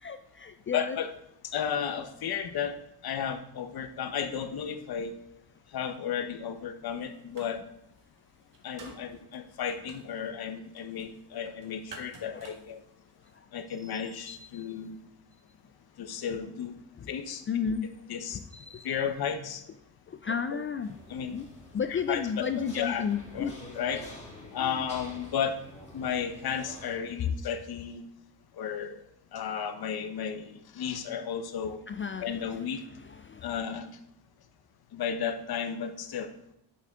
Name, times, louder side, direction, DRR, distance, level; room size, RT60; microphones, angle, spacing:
voice 1, 0.0-1.0 12.3-12.4 13.8-14.0 14.3-14.7 17.0-17.1 17.5-17.9 18.5-18.9 20.1-20.9 21.3-21.5 21.7-23.5 24.6-24.8 31.9-32.3 33.1-33.5, left 6 dB, 30° left, 10 dB, 0.4 m, -33 dB
voice 2, 0.7-1.1 1.5-2.8 3.0-5.1 5.7-7.6 8.6-12.8 13.5-15.0 16.0-16.7 17.1-17.4 18.1-18.4 18.8-19.6 20.3-20.6 21.1-21.4 21.9-23.1 23.3-24.1 24.5-25.6 25.9-28.0 28.6-29.0 29.3-31.8 32.2-32.8 33.4-33.9 34.9-36.3, left 7 dB, 60° left, 9 dB, 1.0 m, -33 dB
sound 1, 6.9-7.7 8.0-13.3, right 3 dB, 45° right, 1.7 m, -51 dB
sound 2, 20.8-27.0, left 1 dB, 15° left, 3.1 m, -48 dB
9.0 x 7.1 x 3.6 m, 0.78 s
cardioid pair, 125°, 43 cm